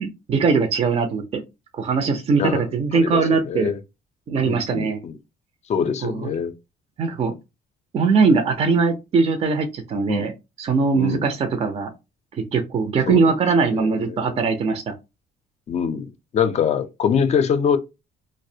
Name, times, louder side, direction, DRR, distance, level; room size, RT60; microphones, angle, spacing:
voice 1, 0.0-1.4 1.7-3.7 4.3-5.0 6.0-6.3 7.0-7.3 7.9-10.3 10.6-11.9 12.4-14.9, right 4 dB, 35° right, 0.5 m, -21 dB
voice 2, 2.9-3.8 4.4-5.2 5.7-6.5 10.1-10.3 10.9-11.2 13.1-13.3 13.7-14.4 15.7-17.8, left 7 dB, 40° left, 0.4 m, -24 dB
2.3 x 2.0 x 2.7 m
cardioid pair, 110°, 17 cm